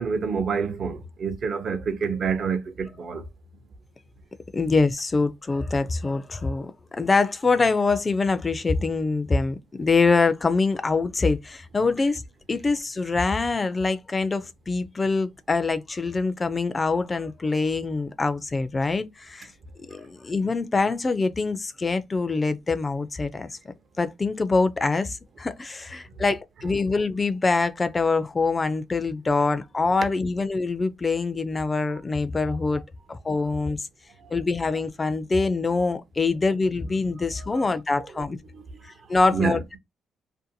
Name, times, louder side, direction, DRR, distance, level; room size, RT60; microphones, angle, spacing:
voice 1, 0.0-3.2 37.5-37.6 39.3-39.6, right 6 dB, 55° right, 0.5 m, -27 dB
voice 2, 4.5-12.2 12.5-19.5 19.8-23.5 24.0-32.8 33.1-33.9 34.3-38.4 39.1-39.8, left 3 dB, 25° left, 0.3 m, -24 dB
2.5 x 2.2 x 2.6 m
cardioid pair, 90°, 0 cm